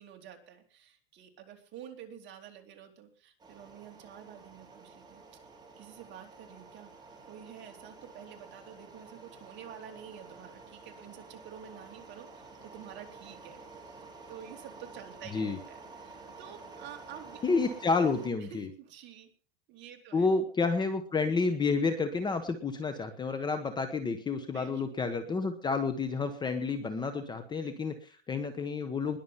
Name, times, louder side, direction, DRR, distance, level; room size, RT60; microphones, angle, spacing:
voice 1, 0.0-5.2 5.8-6.9 7.3-13.6 13.8-14.0 14.3-17.4 18.5-19.3 19.7-20.3 24.5-24.8, right 9 dB, 35° right, 3 dB, 3.1 m, -49 dB
sound 1, 3.4-18.3, right 3 dB, 10° right, 3.9 m, -50 dB
voice 2, 17.4-18.7 20.1-29.2, left 4 dB, 15° left, 8 dB, 1.1 m, -30 dB
21.0 x 7.2 x 5.7 m, 0.40 s
supercardioid pair, 145°, 33 cm